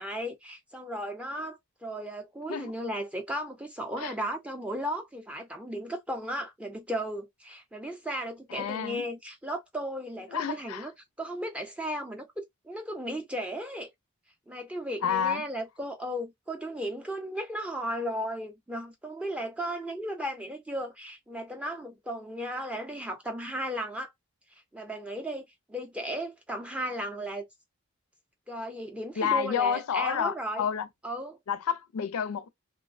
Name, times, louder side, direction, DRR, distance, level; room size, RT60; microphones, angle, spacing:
voice 1, 0.0-10.9 11.2-12.3 12.6-13.9 14.5-24.1 24.7-27.5 28.5-30.7 31.0-31.4, equal, 5° right, 0.4 m, -35 dB
voice 2, 8.5-9.1 10.3-10.9 15.0-15.4 29.2-30.9 31.5-32.5, left 7 dB, 90° left, 0.4 m, -29 dB
2.5 x 2.0 x 2.4 m
head